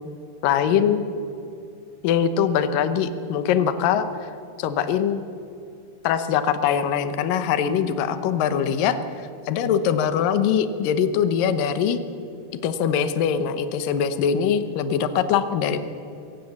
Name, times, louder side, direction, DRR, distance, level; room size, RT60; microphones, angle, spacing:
voice 1, 0.4-1.0 2.0-4.3 4.6-5.2 6.0-9.0 9.5-12.0 12.6-15.8, left 8 dB, 80° left, 11 dB, 2.0 m, -22 dB
22.5 x 17.5 x 7.2 m, 2.7 s
omnidirectional pair, 5.4 m